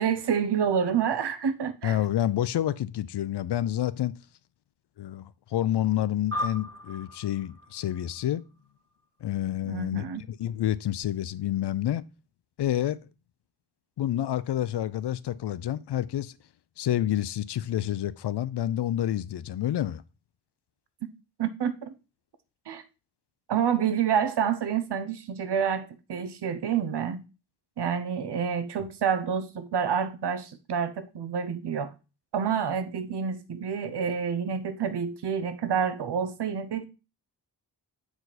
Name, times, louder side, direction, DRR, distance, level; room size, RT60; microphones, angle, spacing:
voice 1, 0.0-2.0 9.7-10.2 21.4-21.9 22.7-22.8 23.5-27.3 27.8-31.9 32.3-36.9, right 7 dB, 80° right, 0.9 m, -28 dB
voice 2, 1.8-4.1 5.0-8.4 9.2-12.0 12.6-13.0 14.0-16.3 16.8-20.0, left 12 dB, 75° left, 0.5 m, -28 dB
sound 1, 6.3-9.0, left 1 dB, 35° right, 2.8 m, -37 dB
7.7 x 4.8 x 4.0 m
wide cardioid pair, 150°, 40 cm